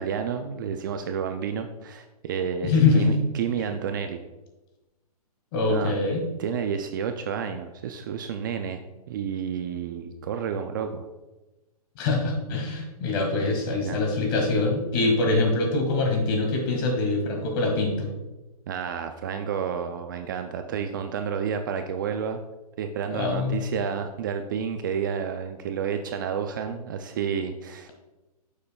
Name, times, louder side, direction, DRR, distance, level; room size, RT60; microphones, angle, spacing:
voice 1, 0.0-4.2 5.7-6.0 6.4-8.8 9.1-11.1 13.8-14.0 18.7-22.4 22.8-27.9, right 7 dB, 30° right, 7 dB, 0.4 m, -30 dB
voice 2, 2.6-3.1 5.5-6.2 11.9-18.1 23.1-23.6, left 3 dB, 35° left, 2 dB, 1.8 m, -24 dB
9.5 x 6.8 x 2.3 m, 1.1 s
hypercardioid pair, 155°, 20 cm